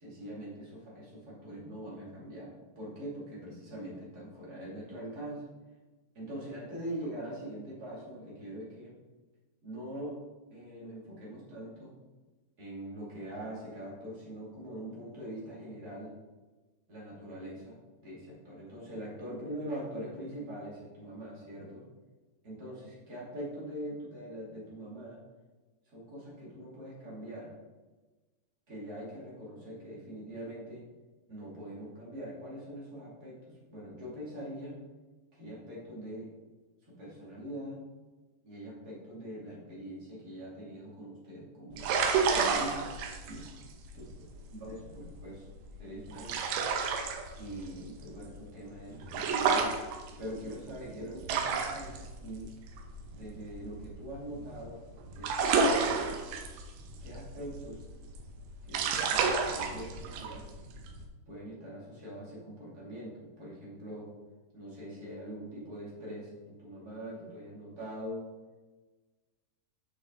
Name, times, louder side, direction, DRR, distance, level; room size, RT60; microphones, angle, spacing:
voice 1, 0.0-5.4 6.1-8.9 9.6-10.2 10.5-11.9 12.6-16.1 16.9-21.8 22.4-25.2 25.9-27.5 28.7-30.8 31.3-34.8 35.3-36.3 36.8-37.8 38.4-41.9 42.3-43.0 43.3-43.5 43.9-44.0 44.6-45.5 45.8-46.6 47.4-49.8 50.2-52.5 53.1-54.8 55.2-55.5 57.0-57.8 58.6-60.5 61.3-64.1 64.5-68.3, right 1 dB, 30° right, -6 dB, 2.2 m, -43 dB
sound 1, 41.7-54.6 54.9-61.1, right 5 dB, 85° right, 3.0 m, -31 dB
8.2 x 6.5 x 3.7 m, 1.2 s
omnidirectional pair, 4.8 m